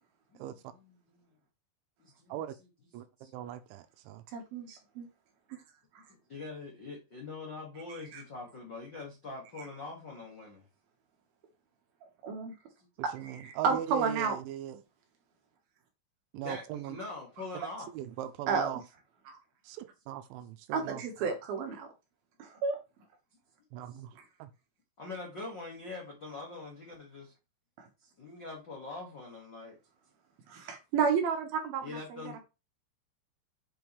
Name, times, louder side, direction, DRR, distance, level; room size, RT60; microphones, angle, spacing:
voice 1, 0.3-1.3 2.0-2.4 3.2-3.3 6.3-10.6 12.8-12.9 16.4-17.9 23.9-24.0 25.0-27.3 28.0-29.8 31.8-32.4, left 3 dB, 80° left, 1.0 m, -43 dB
voice 2, 3.3-4.2 13.1-14.8 16.3-17.0 17.9-18.8 19.7-21.0 23.7-24.1 24.4-24.5, right 12 dB, 85° right, 3.1 m, -40 dB
voice 3, 4.3-5.1 8.1-8.2 12.2-12.5 13.0-14.4 18.5-18.7 19.3-19.4 20.7-21.9 22.4-22.8 30.5-32.4, right 5 dB, 65° right, 2.8 m, -32 dB
8.5 x 5.3 x 3.2 m
omnidirectional pair, 5.4 m